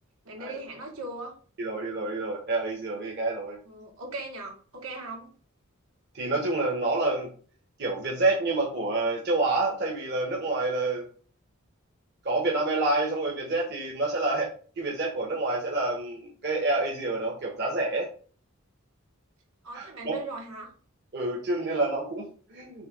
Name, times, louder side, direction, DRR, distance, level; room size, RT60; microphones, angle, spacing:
voice 1, 0.2-1.3 3.6-5.3 19.6-20.7, right 2 dB, 80° right, 0 dB, 2.1 m, -38 dB
voice 2, 1.6-3.6 6.1-7.3 7.8-11.1 12.2-14.5 14.8-18.1 19.7-20.2 21.1-22.9, right 2 dB, 50° right, -1 dB, 1.3 m, -28 dB
6.6 x 2.8 x 5.3 m, 0.42 s
head